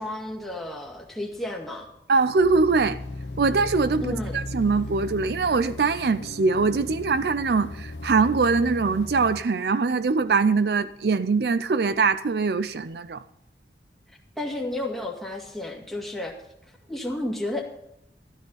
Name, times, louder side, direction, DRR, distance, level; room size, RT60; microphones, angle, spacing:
voice 1, 0.0-1.9 4.0-4.4 14.4-16.3 16.9-17.6, left 1 dB, ahead, 2.0 m, -32 dB
voice 2, 2.1-3.0 3.4-13.2, right 4 dB, 60° right, 0.5 m, -22 dB
sound 1, 2.4-9.4, left 1 dB, 85° left, 1.1 m, -36 dB
13.5 x 13.0 x 4.0 m
head